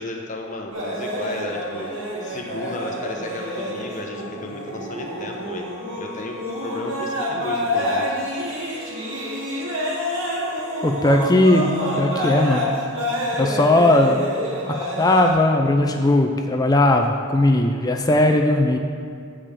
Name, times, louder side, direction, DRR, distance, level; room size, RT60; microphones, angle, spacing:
voice 1, 0.0-1.9 2.2-5.7 6.0-8.2, left 1 dB, 35° left, 1 dB, 1.0 m, -34 dB
sound 1, 0.7-15.3, left 1 dB, 65° right, 2.0 m, -28 dB
voice 2, 10.8-12.7 13.3-14.2 14.7-18.8, left 1 dB, 20° left, 3 dB, 0.5 m, -18 dB
8.8 x 5.0 x 7.4 m, 2.4 s
head